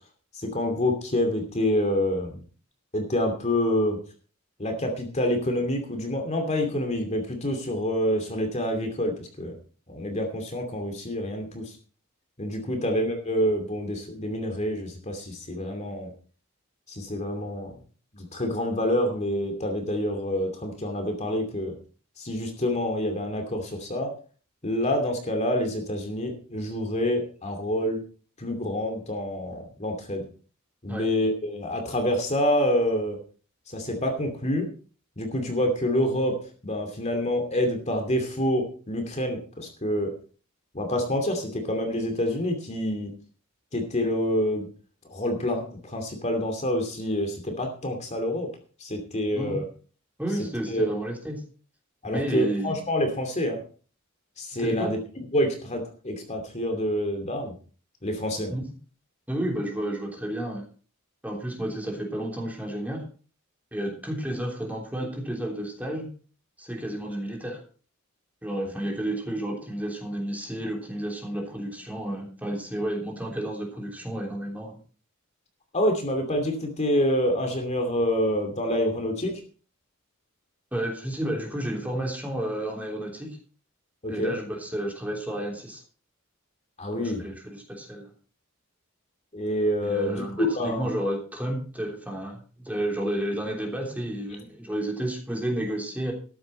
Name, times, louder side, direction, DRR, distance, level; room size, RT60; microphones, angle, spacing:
voice 1, 0.3-2.4 2.9-4.0 4.6-9.5 9.9-11.6 12.4-16.1 16.9-17.7 18.1-21.8 22.2-24.1 24.6-28.0 28.4-30.3 30.8-33.2 33.7-34.7 35.2-36.4 36.6-40.1 40.7-43.1 43.7-44.7 45.1-48.5 48.8-49.6 50.7-50.9 52.0-53.6 54.4-55.0 55.3-57.5 58.0-58.5 75.7-79.3 84.0-84.3 86.8-87.2 89.3-90.9, left 1 dB, 35° left, 3 dB, 2.6 m, -27 dB
voice 2, 50.2-51.4 52.0-52.8 54.6-55.0 58.5-58.6 59.3-60.6 61.2-63.0 63.7-66.1 66.6-67.6 68.4-74.8 80.7-83.4 84.1-85.8 86.9-88.1 89.8-96.1, right 1 dB, 10° right, 0 dB, 3.3 m, -31 dB
13.5 x 10.0 x 4.3 m, 0.39 s
head